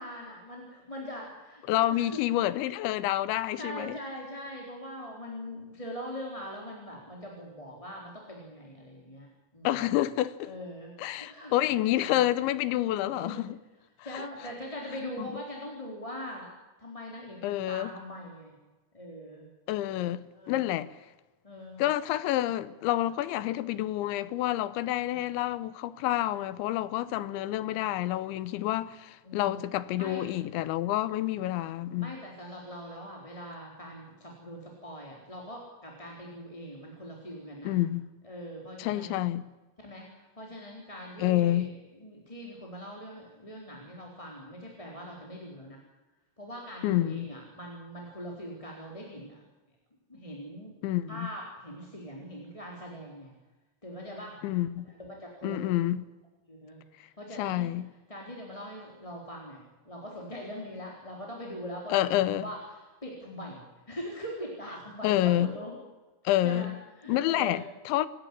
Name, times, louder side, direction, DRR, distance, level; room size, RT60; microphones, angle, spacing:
voice 1, 0.0-2.1 3.6-9.8 10.4-10.9 11.2-11.5 12.0-12.2 12.9-13.5 14.0-16.5 16.8-18.5 18.9-19.5 20.4-20.7 21.4-21.9 25.1-25.2 29.2-29.6 30.0-30.3 32.0-37.8 38.2-39.2 39.8-45.8 46.4-49.4 50.1-50.7 51.1-53.3 53.8-54.4 55.0-55.9 56.5-57.7 58.1-63.6 63.9-65.8 66.4-67.6, equal, 10° left, 3.4 m, -42 dB
voice 2, 1.7-4.0 9.6-10.5 11.0-13.6 14.1-14.3 15.2-15.3 17.4-17.9 19.7-20.9 21.8-32.1 37.6-38.0 38.8-39.5 41.2-41.7 46.8-47.3 50.8-51.3 54.4-54.9 55.4-56.1 57.4-57.9 61.9-62.5 65.0-65.6 66.2-66.8 67.1-68.1, left 14 dB, 85° left, 3.2 m, -28 dB
28.0 x 14.5 x 10.0 m
omnidirectional pair, 5.3 m